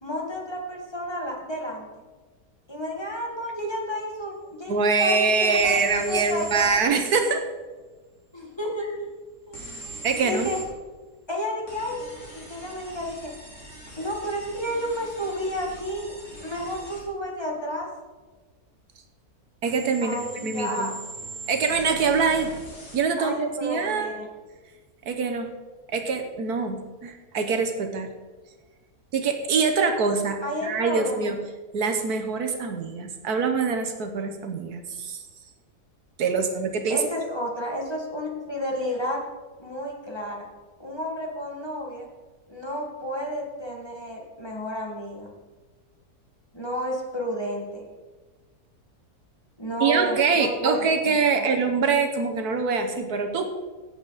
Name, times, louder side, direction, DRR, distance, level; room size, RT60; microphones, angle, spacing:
voice 1, 0.0-1.9 2.7-6.8 8.3-9.1 9.5-9.7 10.2-10.6 11.3-12.0 12.3-13.3 14.0-16.1 16.4-17.9 20.0-20.9 23.2-24.3 30.4-31.3 36.9-39.2 39.6-40.5 40.8-42.1 42.5-45.3 46.5-47.8 49.6-51.5, equal, 15° left, -2 dB, 2.0 m, -31 dB
voice 2, 4.7-7.4 10.0-10.5 19.6-20.9 21.5-22.5 22.9-24.1 25.0-25.5 25.9-28.1 29.1-31.4 31.7-35.2 36.2-37.0 49.8-53.5, right 5 dB, 75° right, 6 dB, 1.5 m, -24 dB
sound 1, 5.6-6.7 9.5-10.7 11.7-17.0 19.7-23.0, right 2 dB, 50° left, 3.7 m, -41 dB
16.5 x 7.9 x 4.1 m, 1.3 s
omnidirectional pair, 1.7 m